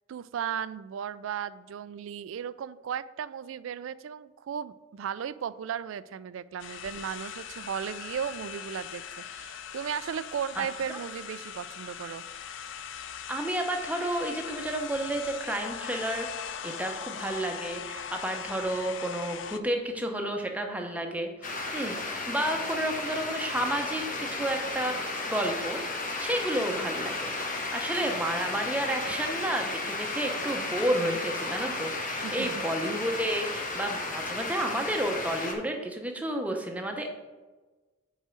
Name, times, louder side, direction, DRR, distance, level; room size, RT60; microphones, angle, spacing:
voice 1, 0.1-12.2 32.2-32.5, right 8 dB, 85° right, 18 dB, 0.3 m, -35 dB
sound 1, 6.6-19.6, left 8 dB, 75° left, 0.4 m, -40 dB
voice 2, 13.3-25.8 26.2-37.1, right 1 dB, 5° right, 3 dB, 0.7 m, -31 dB
sound 2, 21.4-35.5, left 2 dB, 45° left, 1.1 m, -34 dB
5.3 x 4.9 x 6.3 m, 1.3 s
head